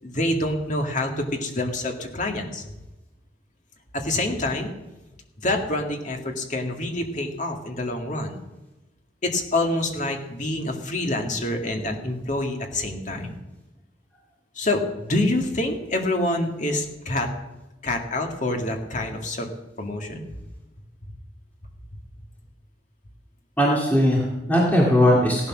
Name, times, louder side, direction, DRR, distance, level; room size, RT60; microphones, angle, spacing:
voice 1, 0.0-2.6 3.9-4.7 5.4-8.4 9.2-13.3 14.5-17.3 17.8-19.5 19.8-20.3, left 1 dB, 45° left, 3 dB, 2.1 m, -26 dB
voice 2, 23.6-25.5, equal, 10° left, -4 dB, 2.3 m, -19 dB
16.5 x 11.5 x 6.2 m, 1.0 s
head